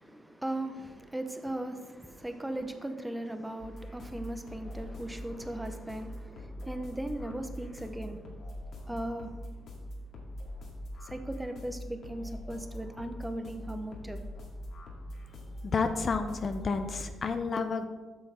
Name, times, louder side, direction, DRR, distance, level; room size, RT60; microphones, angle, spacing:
voice 1, 0.0-8.2 8.9-9.3 11.0-14.2, right 1 dB, 10° right, 0.8 m, -38 dB
sound 1, 3.6-17.1, equal, 70° left, 2.0 m, -43 dB
voice 2, 15.7-17.9, left 4 dB, 40° left, 0.5 m, -30 dB
8.2 x 6.3 x 4.3 m
cardioid pair, 90°, 0 cm